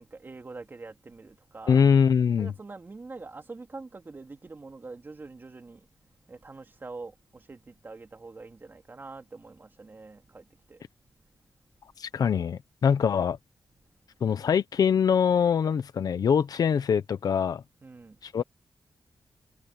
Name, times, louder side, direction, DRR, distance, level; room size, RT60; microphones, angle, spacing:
voice 1, 0.0-1.8 2.4-5.8 6.3-10.8 17.8-18.2, right 3 dB, 30° right, 2.7 m, -44 dB
voice 2, 1.7-2.5 12.0-13.4 14.2-17.6 18.2-18.4, left 7 dB, 70° left, 0.9 m, -23 dB
wide cardioid pair, 125°, 7 cm